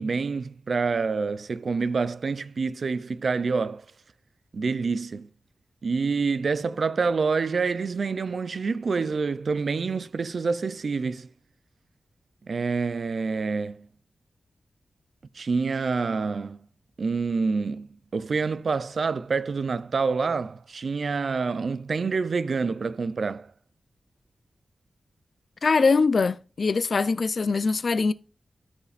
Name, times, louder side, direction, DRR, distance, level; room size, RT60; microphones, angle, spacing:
voice 1, 0.0-3.8 4.5-5.3 5.8-11.3 12.5-13.9 15.4-16.6 17.0-23.5, right 4 dB, 60° right, 0.4 m, -27 dB
voice 2, 25.6-28.1, left 4 dB, 55° left, 0.4 m, -22 dB
13.5 x 5.7 x 2.4 m
wide cardioid pair, 135°, 0 cm